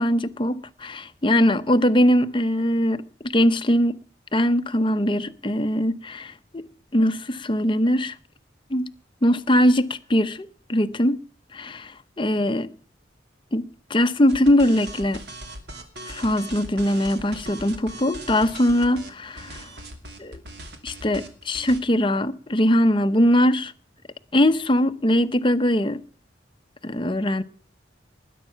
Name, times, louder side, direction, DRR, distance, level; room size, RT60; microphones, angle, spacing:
voice 1, 0.0-4.0 4.3-6.7 6.9-8.2 8.7-8.9 9.2-11.2 11.5-12.7 13.5-15.2 16.0-19.7 20.2-20.4 20.8-23.7 24.3-26.0 26.8-27.4, equal, 25° left, 0.8 m, -21 dB
sound 1, 14.3-21.8, right 1 dB, 60° right, 2.5 m, -39 dB
20.5 x 10.0 x 5.7 m
head